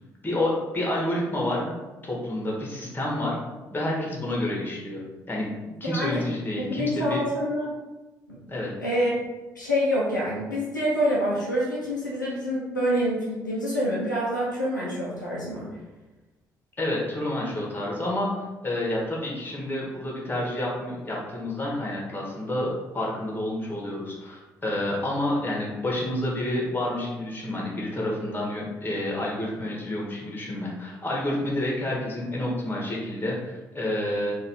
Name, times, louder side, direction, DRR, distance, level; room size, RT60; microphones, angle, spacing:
voice 1, 0.2-1.7 2.0-3.4 3.7-7.2 8.5-8.7 16.8-18.3 18.6-34.4, left 1 dB, 20° left, -3 dB, 1.5 m, -29 dB
voice 2, 5.8-6.2 6.6-7.7 8.3-8.4 8.8-9.1 9.5-15.8, equal, 85° left, -7 dB, 0.7 m, -26 dB
3.9 x 2.7 x 4.4 m, 1.1 s
figure-of-eight pair, 45°, 10 cm